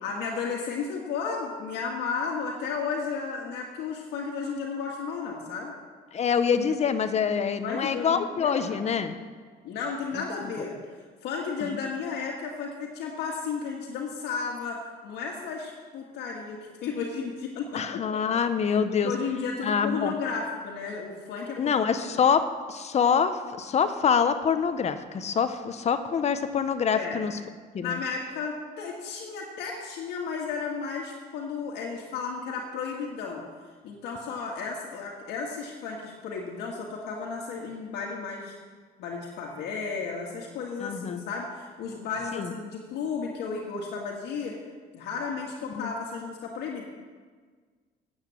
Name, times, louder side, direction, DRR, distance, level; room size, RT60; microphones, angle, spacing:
voice 1, 0.0-5.7 7.6-8.8 9.6-10.7 11.2-18.0 18.9-21.8 26.9-27.2 27.8-33.4 33.8-38.5 39.0-44.6 44.9-46.8, left 5 dB, 80° left, -2 dB, 1.7 m, -33 dB
voice 2, 6.1-9.2 11.6-11.7 17.7-19.1 19.6-20.1 21.6-27.3 27.7-28.0 40.8-41.2 42.4-42.5 45.8-45.9, left 6 dB, 40° left, 10 dB, 0.9 m, -25 dB
8.9 x 7.9 x 7.5 m, 1.5 s
cardioid pair, 110°, 17 cm